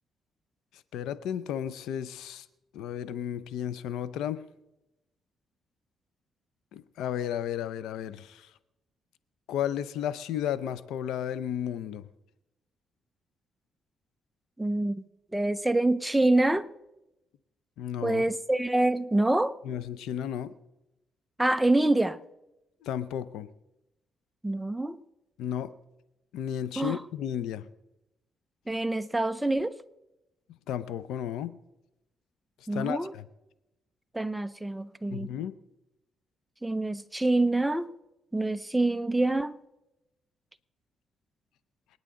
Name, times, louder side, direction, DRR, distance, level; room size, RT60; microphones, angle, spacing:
voice 1, 0.9-2.5 2.7-4.5 6.7-8.5 9.5-12.1 17.8-18.2 19.6-20.5 22.8-23.5 25.4-25.7 26.3-27.7 30.7-31.6 32.7-33.2 35.1-35.6, left 10 dB, 85° left, 0.6 m, -33 dB
voice 2, 14.6-15.0 15.3-16.7 18.0-19.6 21.4-22.2 24.4-25.0 26.8-27.0 28.7-29.8 32.7-33.1 34.1-35.3 36.6-37.9 38.3-39.6, right 2 dB, 10° right, 0.7 m, -26 dB
27.5 x 9.6 x 3.8 m
cardioid pair, 90°, 0 cm